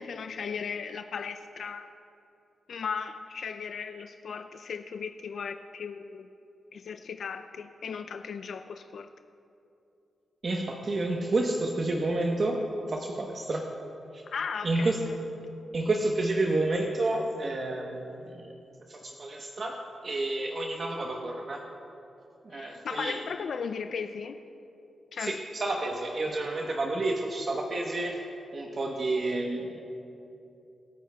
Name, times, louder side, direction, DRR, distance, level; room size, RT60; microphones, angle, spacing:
voice 1, 0.0-1.9 2.7-6.3 6.7-9.1 14.3-15.2 22.5-24.4 25.1-25.4, left 6 dB, 70° left, 7 dB, 0.4 m, -36 dB
voice 2, 10.4-13.7 14.1-14.2 14.6-15.0 15.7-18.5 18.9-21.6 22.4-23.2 25.2-28.2 28.5-29.8, right 2 dB, 50° right, 0 dB, 1.0 m, -30 dB
26.0 x 9.2 x 2.3 m, 2.7 s
cardioid pair, 70°, 0 cm